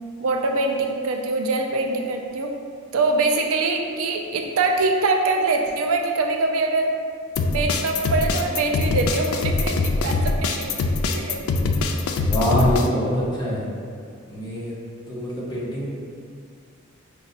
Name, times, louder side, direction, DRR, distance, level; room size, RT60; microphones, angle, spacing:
voice 1, 0.2-2.5 2.9-6.9 7.4-10.7 11.1-11.6, right 3 dB, 70° right, 2 dB, 0.4 m, -23 dB
sound 1, 7.4-12.9, left 3 dB, 85° left, 0.3 m, -23 dB
voice 2, 12.2-13.7 14.3-14.7 15.1-15.9, equal, 20° left, -6 dB, 0.7 m, -24 dB
5.2 x 2.1 x 2.6 m, 2.2 s
head